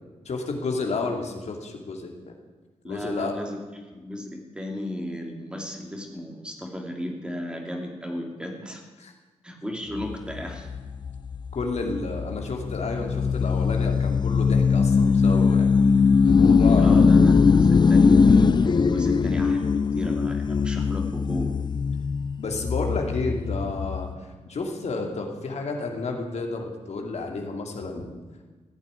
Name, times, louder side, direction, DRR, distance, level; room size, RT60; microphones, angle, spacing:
voice 1, 0.3-2.1 2.8-3.4 9.0-9.1 11.5-15.7 16.3-17.0 22.4-24.1 24.5-28.1, left 3 dB, 65° left, 2 dB, 2.6 m, -31 dB
voice 2, 2.8-8.8 9.4-10.7 16.8-21.5, left 1 dB, 10° right, 2 dB, 2.8 m, -34 dB
sound 1, 10.0-24.1, left 5 dB, 40° left, 0.4 m, -21 dB
16.0 x 9.2 x 9.2 m, 1.3 s
wide cardioid pair, 100°, 12 cm